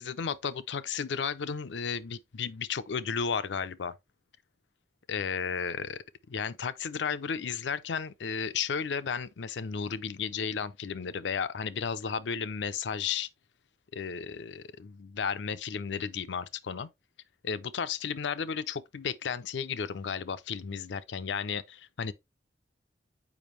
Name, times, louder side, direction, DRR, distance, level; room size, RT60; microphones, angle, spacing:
voice 1, 0.0-3.9 5.1-13.3 13.9-16.9 17.4-22.1, left 6 dB, 90° left, 0.5 m, -33 dB
7.2 x 5.1 x 3.1 m
head